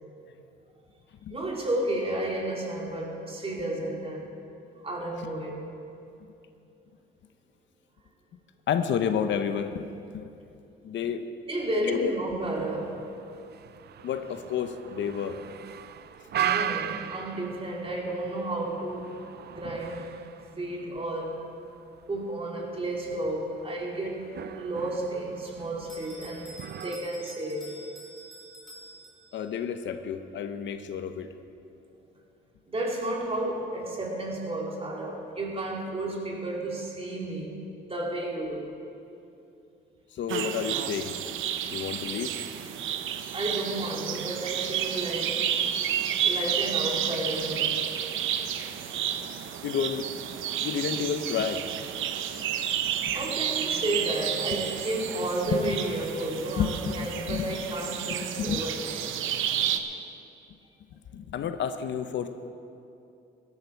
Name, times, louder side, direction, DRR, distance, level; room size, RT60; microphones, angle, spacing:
voice 1, 1.3-4.4 4.8-5.7 11.5-13.1 16.0-19.1 19.5-20.1 20.5-21.4 22.1-27.7 32.7-38.7 43.3-45.5 46.2-47.8 53.1-59.0, right 1 dB, 30° right, -2 dB, 3.0 m, -32 dB
voice 2, 8.7-9.9 10.1-10.3 10.8-11.2 11.8-12.1 14.0-15.4 29.3-31.3 40.1-41.1 41.7-42.3 49.6-50.1 50.6-51.6 53.0-53.2 55.5-55.8 56.6-57.5 58.4-58.6 61.1-62.3, left 8 dB, 65° left, 9 dB, 0.8 m, -30 dB
sound 1, 12.4-27.0, right 10 dB, 55° right, 0.5 m, -38 dB
Bell, 25.9-29.6, right 1 dB, ahead, 3.1 m, -48 dB
sound 2, 40.3-59.8, right 9 dB, 80° right, 0.8 m, -31 dB
16.0 x 12.5 x 4.6 m, 2.7 s
cardioid pair, 90°, 20 cm